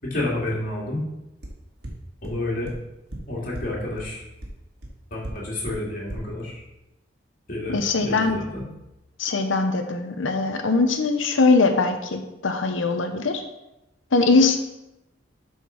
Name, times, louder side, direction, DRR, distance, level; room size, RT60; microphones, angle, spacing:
voice 1, 0.0-1.0 2.2-2.7 3.3-4.2 5.1-6.6 7.5-8.7, left 1 dB, 45° left, -4 dB, 2.7 m, -30 dB
sound 1, 1.4-1.5 1.8-1.9 2.2-2.3 2.7-2.8 3.1-3.2 3.5-3.6 4.0-4.1 4.4-4.5 4.8-4.9 5.2-5.3 5.7-5.8 6.1-6.2, right 1 dB, 55° right, 1.9 m, -35 dB
voice 2, 7.7-8.4 9.2-13.4 14.1-14.6, left 3 dB, 80° left, 6 dB, 0.9 m, -21 dB
8.4 x 4.5 x 5.9 m, 0.93 s
head